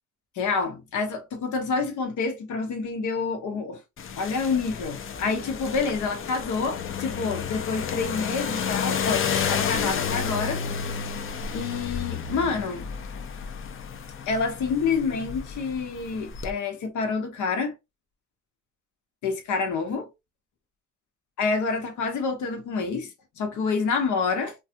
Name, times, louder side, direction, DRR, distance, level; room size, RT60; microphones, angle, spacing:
voice 1, 0.3-3.8 4.2-10.6 11.5-12.9 14.3-17.7 19.2-20.1 21.4-24.6, left 4 dB, 75° left, 1.0 m, -28 dB
sound 1, 4.0-16.5, left 7 dB, 45° left, 0.6 m, -31 dB
3.3 x 2.3 x 2.8 m
cardioid pair, 90°, 30 cm